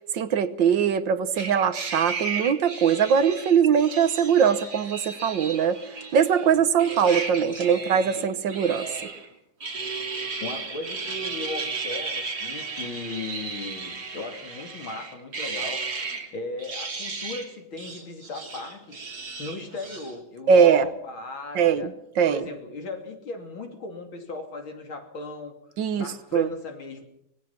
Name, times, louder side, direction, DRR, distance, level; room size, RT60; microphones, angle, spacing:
voice 1, 0.1-5.8 6.1-8.9 20.5-20.9 21.6-21.9 22.2-22.4 25.8-26.1 26.3-26.5, right 7 dB, 70° right, 13 dB, 1.7 m, -21 dB
sound 1, 1.4-6.5 6.8-9.3 9.6-16.3 16.6-17.5 17.8-20.1, right 4 dB, 50° right, 3.3 m, -34 dB
voice 2, 10.4-15.8 16.3-19.1 19.4-21.9 22.3-25.6 26.0-27.0, left 3 dB, 85° left, 4 dB, 3.7 m, -37 dB
24.5 x 20.0 x 5.8 m, 0.75 s
omnidirectional pair, 2.2 m